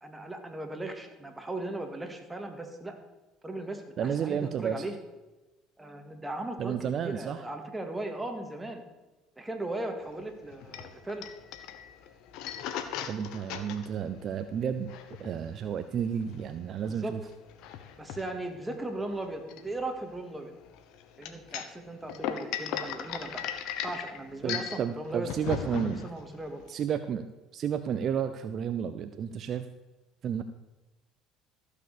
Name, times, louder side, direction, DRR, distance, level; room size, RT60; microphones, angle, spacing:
voice 1, 0.0-3.0 3.4-5.0 5.8-8.8 9.4-11.3 16.8-17.2 18.0-20.5 21.2-23.5 23.8-26.7, right 2 dB, 15° right, 4 dB, 2.3 m, -38 dB
voice 2, 4.0-4.8 6.6-7.5 13.1-14.9 15.2-17.2 24.4-26.1 26.7-27.3 27.5-29.7 30.2-30.4, right 8 dB, 50° right, 10 dB, 0.7 m, -31 dB
sound 1, 10.0-26.7, left 9 dB, 70° left, 1.1 m, -39 dB
14.0 x 6.5 x 6.9 m, 1.1 s
supercardioid pair, 80°, 0 cm